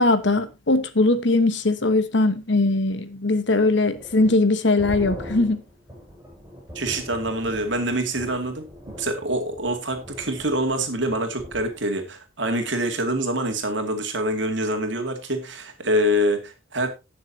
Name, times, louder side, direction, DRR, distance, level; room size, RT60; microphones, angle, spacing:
voice 1, 0.0-5.6, left 2 dB, 65° left, 1.1 m, -20 dB
sound 1, 3.9-11.8, equal, 10° right, 7.7 m, -40 dB
voice 2, 6.7-16.9, right 1 dB, 65° right, 2.3 m, -25 dB
18.0 x 6.7 x 2.8 m
head